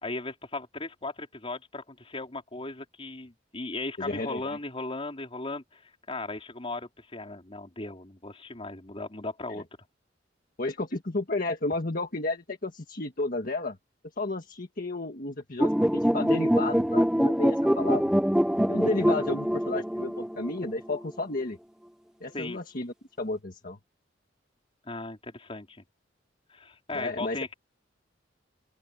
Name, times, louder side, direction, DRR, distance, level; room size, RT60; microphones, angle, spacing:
voice 1, 0.0-9.6 22.3-22.6 24.8-25.8 26.5-27.5, left 2 dB, 30° left, 4.1 m, -37 dB
voice 2, 4.0-4.6 9.5-9.6 10.6-13.8 14.2-18.1 18.7-21.6 22.2-23.8 26.9-27.4, left 2 dB, 50° left, 1.7 m, -32 dB
sound 1, 15.6-21.0, equal, 5° right, 0.6 m, -24 dB
open air
head